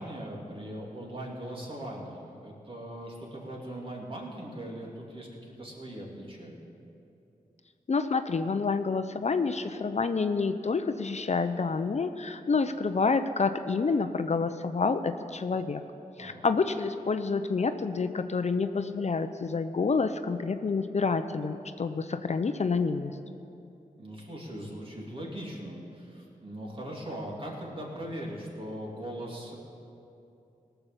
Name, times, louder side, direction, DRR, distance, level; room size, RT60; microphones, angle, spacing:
voice 1, 0.0-6.5 16.2-16.5 24.0-29.6, right 1 dB, 35° right, -2 dB, 3.0 m, -40 dB
voice 2, 7.9-15.8 16.2-23.2, left 4 dB, 50° left, 9 dB, 0.6 m, -28 dB
18.0 x 6.9 x 7.3 m, 2.7 s
cardioid pair, 55°, 15 cm